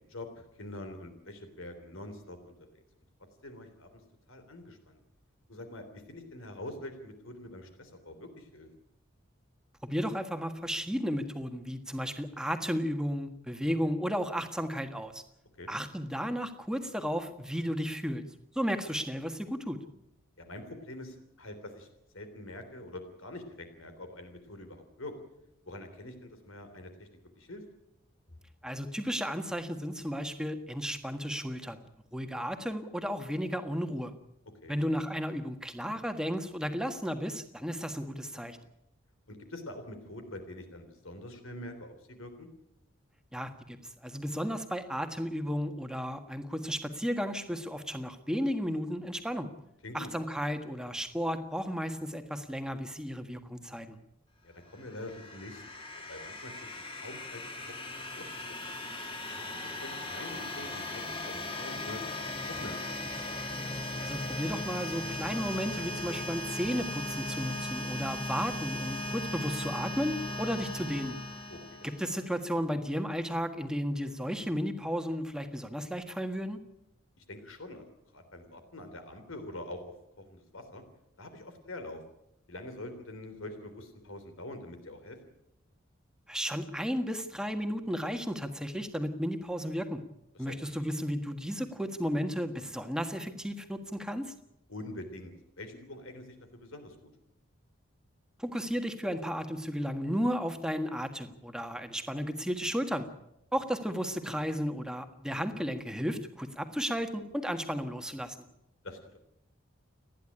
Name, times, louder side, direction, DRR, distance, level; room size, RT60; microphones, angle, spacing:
voice 1, 0.0-2.8 3.4-4.0 4.3-5.0 5.5-8.7 15.6-15.7 20.4-21.9 22.1-25.1 25.7-27.1 27.4-27.6 34.6-34.7 39.3-42.5 49.8-50.1 54.4-55.6 55.9-58.8 59.2-63.1 71.5-71.9 77.2-77.8 78.1-80.8 81.2-82.0 82.5-85.2 90.3-90.9 94.7-97.1 108.8-109.2, left 1 dB, 75° left, 7 dB, 3.4 m, -45 dB
voice 2, 9.8-15.2 15.7-18.2 18.5-19.8 28.6-31.8 32.1-34.1 34.7-38.6 43.3-43.8 44.0-49.5 49.9-54.0 64.0-71.2 71.8-76.6 86.3-90.0 90.4-94.3 98.4-103.1 103.5-108.4, equal, 5° right, 7 dB, 1.5 m, -33 dB
sound 1, 54.7-72.3, left 1 dB, 25° left, 2.6 m, -38 dB
29.5 x 10.5 x 10.0 m, 0.84 s
head